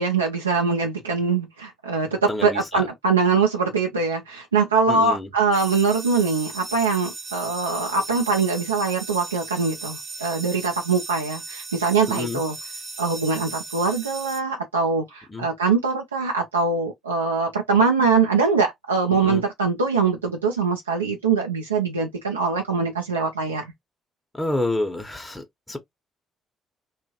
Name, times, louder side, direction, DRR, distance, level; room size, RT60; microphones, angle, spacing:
voice 1, 0.0-12.6 13.0-23.7, right 4 dB, 85° right, 0.4 m, -23 dB
voice 2, 2.3-2.8 4.9-5.3 12.1-12.4 15.3-15.5 19.1-19.4 24.3-25.8, left 2 dB, 15° left, 1.0 m, -28 dB
sound 1, 5.5-14.4, right 3 dB, 45° right, 0.8 m, -37 dB
3.1 x 2.5 x 2.9 m
figure-of-eight pair, 45°, 0 cm